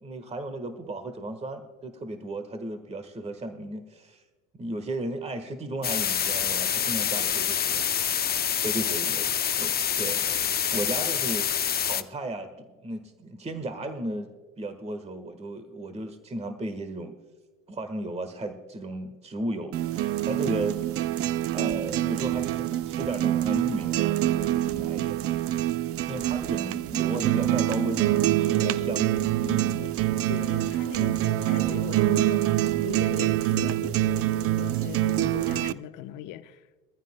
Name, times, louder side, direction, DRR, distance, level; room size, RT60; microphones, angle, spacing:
voice 1, 0.0-4.2 4.5-7.8 8.6-9.3 9.6-10.4 10.7-14.3 14.6-17.1 17.7-19.8 20.2-20.8 21.5-25.2 26.1-28.1 28.4-29.1 29.4-29.8, right 1 dB, 15° right, 1.4 m, -35 dB
sound 1, 5.8-12.0, left 9 dB, 25° left, 0.7 m, -26 dB
sound 2, 19.7-35.7, right 14 dB, 35° right, 0.6 m, -25 dB
voice 2, 26.1-26.8 28.6-29.2 29.8-29.9 30.2-36.6, left 12 dB, 50° left, 1.0 m, -40 dB
23.0 x 14.5 x 2.2 m
hypercardioid pair, 80°, 39 cm